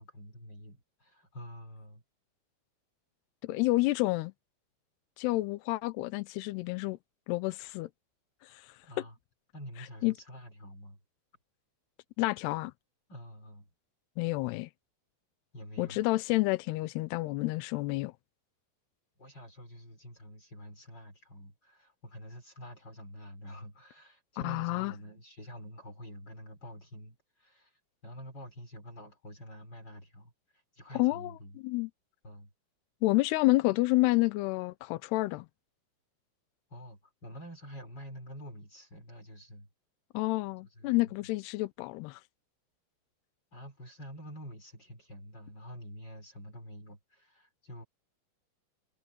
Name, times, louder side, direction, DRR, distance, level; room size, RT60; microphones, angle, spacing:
voice 1, 0.0-2.0 8.9-9.2 9.5-11.0 13.1-13.7 15.5-16.0 19.2-30.3 30.7-31.6 32.2-32.5 36.7-39.7 40.8-41.1 43.5-47.8, equal, 20° left, 6.0 m, -47 dB
voice 2, 3.4-4.3 5.2-7.0 7.3-7.9 8.4-8.8 10.0-10.1 12.2-12.7 14.2-14.7 15.8-18.1 24.4-24.9 31.0-31.4 31.6-31.9 33.0-35.5 40.1-42.2, left 21 dB, 85° left, 2.3 m, -29 dB
omnidirectional pair, 5.7 m